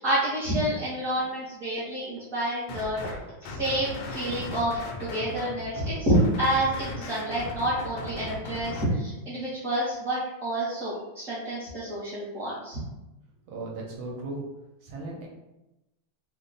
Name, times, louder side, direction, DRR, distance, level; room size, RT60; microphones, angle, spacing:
voice 1, 0.0-12.8, right 1 dB, 45° right, -11 dB, 1.2 m, -28 dB
sound 1, 2.7-3.2 3.4-8.8, left 2 dB, 75° left, 1.2 m, -37 dB
voice 2, 13.5-14.4 14.8-15.3, right 2 dB, 75° right, -2 dB, 1.5 m, -36 dB
3.4 x 2.2 x 3.9 m, 0.97 s
omnidirectional pair, 2.3 m